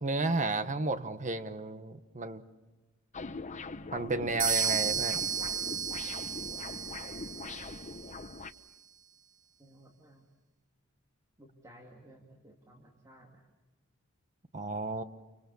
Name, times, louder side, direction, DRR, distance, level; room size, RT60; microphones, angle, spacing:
voice 1, 0.0-2.4 3.9-5.2 14.5-15.0, right 3 dB, 35° right, 10 dB, 1.3 m, -32 dB
sound 1, 3.1-8.5, left 3 dB, 35° left, 0.9 m, -42 dB
sound 2, 4.4-8.2, right 7 dB, 55° right, 2.8 m, -33 dB
voice 2, 9.6-10.2 11.4-13.5, right 1 dB, 15° right, 2 dB, 2.6 m, -56 dB
28.5 x 25.5 x 7.0 m, 1.2 s
head